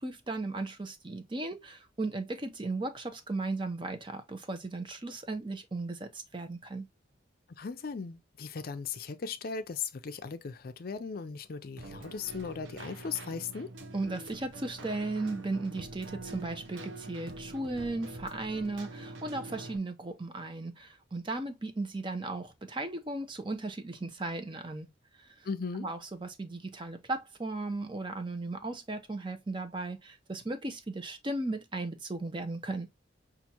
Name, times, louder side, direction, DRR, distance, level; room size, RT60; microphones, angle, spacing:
voice 1, 0.0-6.9 13.9-24.9 25.2-25.3 25.8-32.9, right 2 dB, 25° right, 0.7 m, -36 dB
voice 2, 7.6-13.7 25.4-25.9, left 5 dB, 50° left, 0.4 m, -37 dB
Keyboard (musical), 11.8-19.8, right 2 dB, 85° right, 0.7 m, -45 dB
5.7 x 2.5 x 2.8 m
head